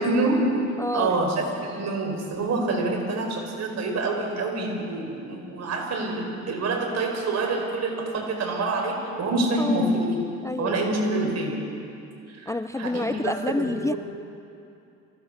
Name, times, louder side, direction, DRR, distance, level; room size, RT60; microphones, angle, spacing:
voice 1, 0.0-0.7 0.9-10.2 10.6-11.6 12.4-14.0, right 2 dB, 60° right, 1 dB, 4.7 m, -26 dB
voice 2, 0.8-1.2 9.6-10.0 10.4-10.9 12.5-13.9, left 2 dB, 10° left, 11 dB, 0.4 m, -28 dB
24.5 x 16.5 x 6.6 m, 2.6 s
cardioid pair, 90°, 30 cm